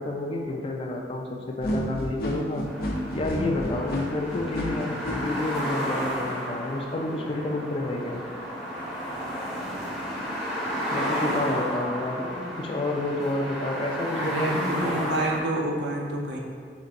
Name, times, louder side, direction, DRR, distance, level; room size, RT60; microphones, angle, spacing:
voice 1, 0.0-2.7 3.1-8.2 10.9-15.0, left 2 dB, 30° left, 1 dB, 0.4 m, -30 dB
sound 1, 1.6-5.2, left 1 dB, 55° left, 0.8 m, -30 dB
sound 2, 2.7-15.4, equal, 5° right, 0.9 m, -32 dB
voice 2, 14.2-16.4, right 1 dB, 75° right, -1 dB, 0.6 m, -28 dB
4.2 x 3.9 x 2.5 m, 2.1 s
head